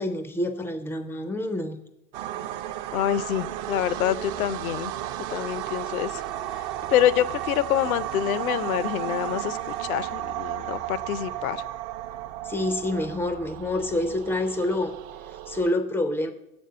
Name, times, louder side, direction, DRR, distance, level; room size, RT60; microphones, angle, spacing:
voice 1, 0.0-1.8 12.4-15.0 15.5-16.3, left 1 dB, 5° left, 9 dB, 0.4 m, -27 dB
sound 1, 2.1-15.7, right 13 dB, 50° right, 0.6 m, -34 dB
voice 2, 2.9-4.9 5.3-6.2 6.9-11.7, left 12 dB, 70° left, 18 dB, 0.6 m, -26 dB
7.4 x 5.3 x 6.6 m, 0.89 s
hypercardioid pair, 110°, 44 cm